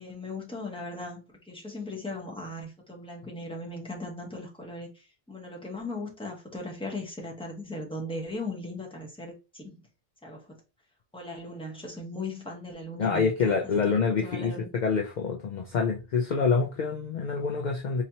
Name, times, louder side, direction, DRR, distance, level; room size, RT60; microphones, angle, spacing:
voice 1, 0.0-9.7 10.2-10.4 11.1-14.7, left 2 dB, 5° left, 1.0 m, -38 dB
voice 2, 13.0-18.0, left 5 dB, 55° left, 0.6 m, -26 dB
4.1 x 2.9 x 2.8 m
omnidirectional pair, 1.1 m